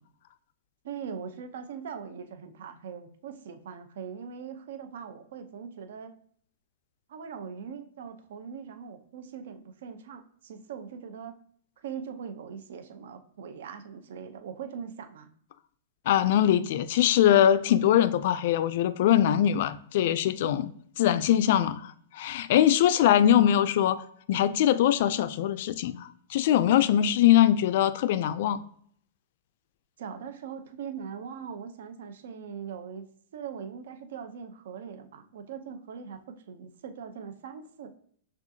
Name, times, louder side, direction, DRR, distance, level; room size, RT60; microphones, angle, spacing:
voice 1, 0.8-6.1 7.1-11.4 11.8-15.3 30.0-33.1 33.3-37.9, right 7 dB, 70° right, 0.6 m, -41 dB
voice 2, 16.1-20.7 21.0-28.6, left 11 dB, 60° left, 0.3 m, -22 dB
6.0 x 2.4 x 2.7 m
hypercardioid pair, 145°, 0 cm